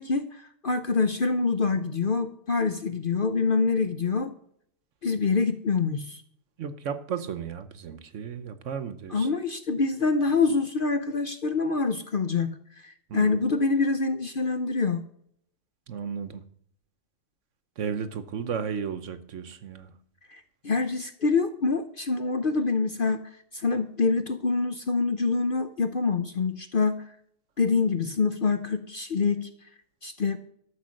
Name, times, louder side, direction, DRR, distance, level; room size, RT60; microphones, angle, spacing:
voice 1, 0.0-4.3 5.0-6.2 9.1-15.0 20.3-23.2 23.5-27.0 27.6-29.5 30.0-30.4, left 4 dB, 50° left, 9 dB, 0.7 m, -26 dB
voice 2, 6.6-9.3 13.1-13.4 15.9-16.4 17.8-19.9, right 7 dB, 60° right, 12 dB, 1.1 m, -34 dB
13.0 x 7.1 x 6.3 m, 0.69 s
omnidirectional pair, 1.5 m